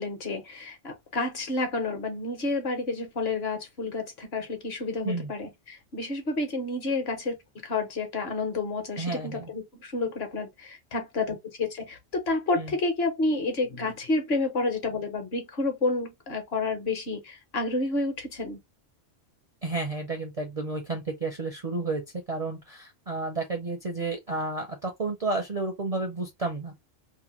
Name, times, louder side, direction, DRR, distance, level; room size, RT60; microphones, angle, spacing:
voice 1, 0.0-7.4 7.6-18.6, left 3 dB, 55° left, 1.0 m, -30 dB
voice 2, 9.0-9.5 12.6-12.7 19.6-22.0 22.3-26.8, right 3 dB, 45° right, 0.4 m, -31 dB
2.8 x 2.1 x 2.8 m
omnidirectional pair, 1.3 m